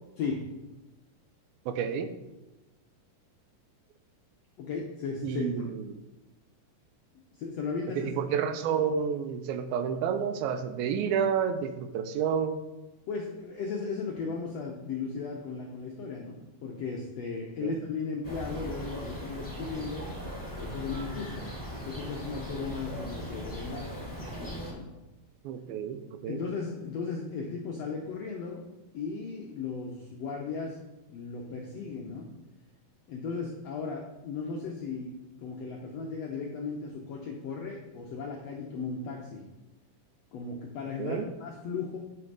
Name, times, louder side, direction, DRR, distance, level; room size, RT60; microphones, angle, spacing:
voice 1, 1.7-2.1 5.2-5.8 8.0-12.6 17.6-17.8 25.4-26.4 41.0-41.3, right 7 dB, 85° right, 9 dB, 2.5 m, -30 dB
voice 2, 4.6-5.6 7.3-8.1 13.1-20.1 20.5-24.0 24.7-24.9 26.3-28.6 28.9-30.8 31.1-32.3 33.1-39.5 40.3-42.0, left 4 dB, 75° left, -1 dB, 1.5 m, -36 dB
sound 1, 18.2-24.7, equal, 5° left, 2.0 m, -39 dB
10.5 x 5.4 x 4.8 m, 1.0 s
omnidirectional pair, 4.2 m